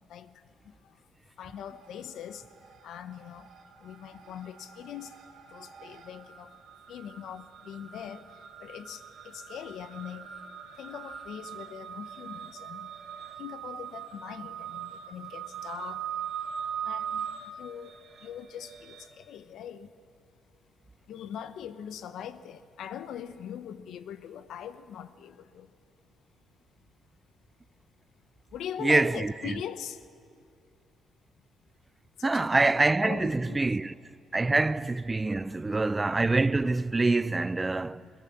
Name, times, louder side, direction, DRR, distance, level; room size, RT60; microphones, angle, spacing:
voice 1, 1.4-2.5 2.8-3.5 3.8-5.1 5.5-6.6 6.9-8.3 8.6-10.3 10.8-12.9 13.4-16.1 16.8-17.3 17.6-17.9 18.2-19.9 21.1-25.7 28.5-30.0 32.2-33.6 34.6-34.7 35.7-35.8 38.0-38.1, left 9 dB, 75° left, 0.9 m, -41 dB
sound 1, 1.5-2.2 2.5-19.1, right 8 dB, 60° right, 3.1 m, -41 dB
voice 2, 28.8-29.6 32.2-33.9 34.3-38.0, right 3 dB, 20° right, 0.5 m, -25 dB
21.5 x 21.0 x 7.2 m
cardioid pair, 90°, 0 cm